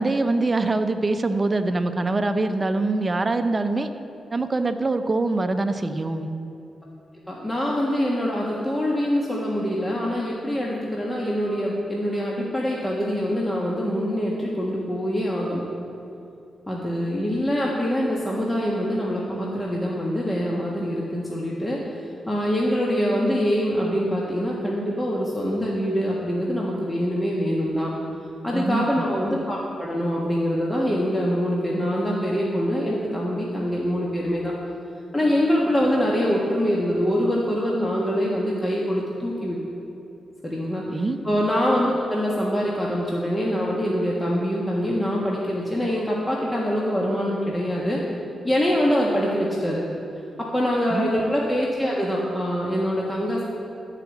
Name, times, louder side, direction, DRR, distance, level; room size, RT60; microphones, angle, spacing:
voice 1, 0.0-3.9 4.3-6.3 28.5-28.8 40.8-41.2 50.9-51.1, right 2 dB, 35° right, 8 dB, 0.7 m, -24 dB
voice 2, 7.3-15.6 16.7-27.9 28.4-34.5 35.1-39.6 40.4-48.0 48.4-49.8 50.4-53.4, equal, 20° left, -4 dB, 1.4 m, -24 dB
12.0 x 5.0 x 7.2 m, 2.7 s
supercardioid pair, 55°, 0 cm